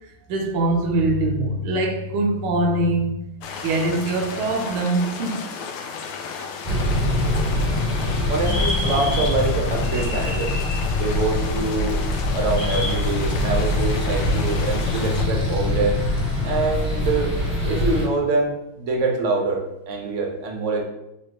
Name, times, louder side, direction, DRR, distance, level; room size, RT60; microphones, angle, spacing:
voice 1, 0.3-3.2 3.6-5.4, right 2 dB, 90° right, 1.6 m, -22 dB
sound 1, 3.4-15.2, left 6 dB, 90° left, 1.5 m, -34 dB
sound 2, 6.6-18.1, left 1 dB, 15° left, 1.3 m, -23 dB
voice 2, 8.3-10.6 10.9-12.0 12.3-16.0 16.4-17.4 17.6-20.8, right 3 dB, 60° right, 0.8 m, -25 dB
5.5 x 3.3 x 2.9 m
omnidirectional pair, 2.4 m